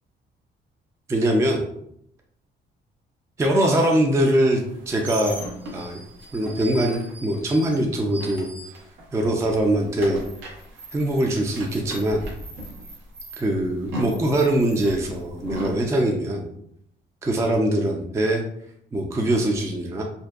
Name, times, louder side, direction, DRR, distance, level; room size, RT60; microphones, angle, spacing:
voice 1, 1.1-1.7 3.4-5.4 5.7-6.0 6.3-8.5 9.1-10.2 10.9-12.3 13.4-16.5 17.2-18.4 18.9-20.0, right 1 dB, 15° right, 1 dB, 0.3 m, -22 dB
sound 1, 4.6-9.2 9.5-15.8, right 1 dB, 85° right, 0.7 m, -37 dB
2.5 x 2.1 x 2.3 m, 0.73 s
cardioid pair, 90°, 20 cm